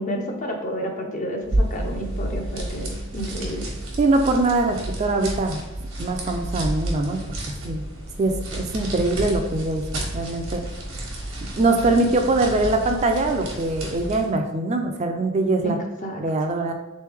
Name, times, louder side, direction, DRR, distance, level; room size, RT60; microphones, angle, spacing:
voice 1, 0.0-3.7 15.6-16.2, equal, 40° left, 2 dB, 0.6 m, -30 dB
sound 1, 1.4-14.3, right 1 dB, 85° right, 1.1 m, -31 dB
voice 2, 4.0-5.6 6.0-7.2 7.6-7.8 8.2-10.6 11.6-15.8 16.2-16.7, right 2 dB, 35° right, 4 dB, 0.4 m, -22 dB
3.7 x 3.2 x 3.4 m, 1.1 s
head